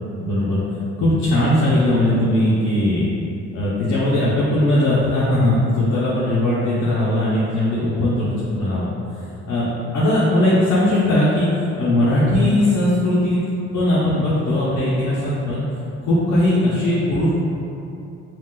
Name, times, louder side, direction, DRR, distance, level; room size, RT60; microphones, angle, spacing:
voice 1, 0.2-0.6 1.0-3.1 3.5-8.9 9.5-11.5 11.8-15.6 16.0-17.3, left 1 dB, 60° left, -9 dB, 0.7 m, -19 dB
3.6 x 2.4 x 2.2 m, 2.7 s
cardioid pair, 90°, 30 cm